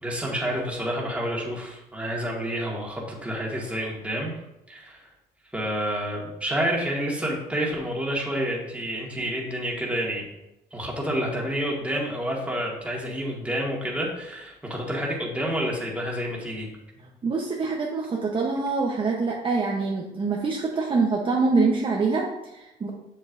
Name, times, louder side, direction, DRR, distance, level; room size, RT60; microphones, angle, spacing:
voice 1, 0.0-4.3 4.7-5.1 5.5-10.3 10.7-16.7, equal, 10° right, -2 dB, 1.9 m, -29 dB
voice 2, 17.2-22.9, right 4 dB, 30° right, -2 dB, 1.0 m, -25 dB
7.5 x 7.0 x 2.7 m, 0.91 s
cardioid pair, 110°, 17 cm